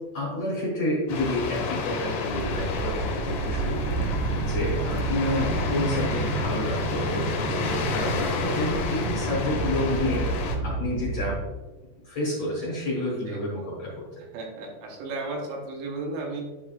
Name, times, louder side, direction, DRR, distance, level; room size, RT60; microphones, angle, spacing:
voice 1, 0.1-11.4 12.0-14.2, left 1 dB, 55° left, -5 dB, 2.0 m, -30 dB
sound 1, 1.1-10.6, left 4 dB, 75° left, 2.1 m, -31 dB
sound 2, 2.3-11.4, right 3 dB, 65° right, 1.7 m, -30 dB
voice 2, 13.0-13.4 14.2-16.5, right 3 dB, 80° right, 0 dB, 3.3 m, -34 dB
10.5 x 4.8 x 2.4 m, 1.2 s
omnidirectional pair, 5.0 m